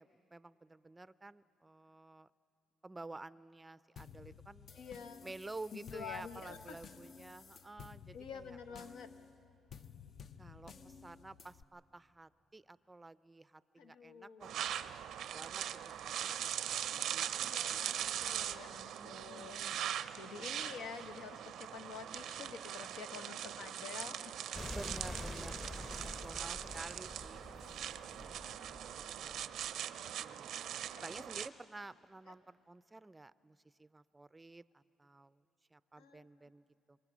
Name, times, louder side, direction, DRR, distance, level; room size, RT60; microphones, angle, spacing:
voice 1, 0.0-2.3 2.8-4.7 5.2-8.9 10.4-15.0 15.3-18.1 19.0-19.9 24.7-29.5 30.2-30.7 31.0-35.4 35.7-37.0, right 2 dB, 15° right, 16 dB, 0.4 m, -52 dB
sound 1, 4.0-11.6, left 7 dB, 55° left, 0.6 m, -55 dB
voice 2, 4.8-5.3 5.7-6.8 8.1-9.1 13.8-14.5 17.4-19.9 20.1-24.3 25.8-25.9 27.5-27.7 28.2-29.3 30.0-30.2 30.6-30.9 36.0-36.3, left 6 dB, 90° left, 7 dB, 1.0 m, -49 dB
sound 2, 14.4-31.5, right 10 dB, 80° right, 0.5 m, -41 dB
sound 3, 24.5-29.8, left 2 dB, 25° left, 1.0 m, -47 dB
26.5 x 22.0 x 6.2 m, 2.9 s
cardioid pair, 90°, 0 cm